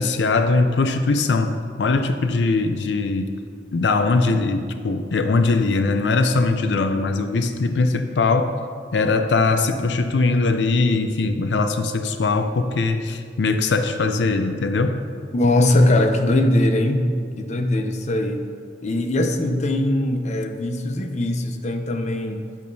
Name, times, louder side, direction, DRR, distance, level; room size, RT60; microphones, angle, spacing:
voice 1, 0.0-3.3 3.7-8.5 8.9-15.0, left 3 dB, 85° left, 8 dB, 0.5 m, -21 dB
voice 2, 15.3-17.0 17.4-18.4 18.8-22.4, left 1 dB, 40° left, 6 dB, 0.6 m, -20 dB
10.5 x 8.4 x 2.7 m, 2.1 s
head